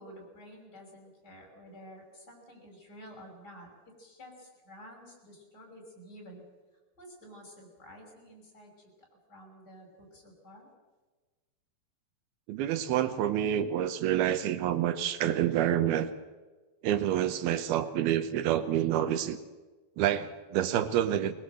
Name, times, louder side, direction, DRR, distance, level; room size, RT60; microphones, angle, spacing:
voice 1, 0.0-3.7 4.0-6.4 7.0-8.7 9.3-10.7, equal, 25° left, 1 dB, 6.5 m, -51 dB
voice 2, 12.5-16.1 16.8-19.4 20.0-21.3, right 11 dB, 85° right, 11 dB, 2.9 m, -28 dB
22.5 x 20.5 x 7.7 m, 1.3 s
omnidirectional pair, 4.3 m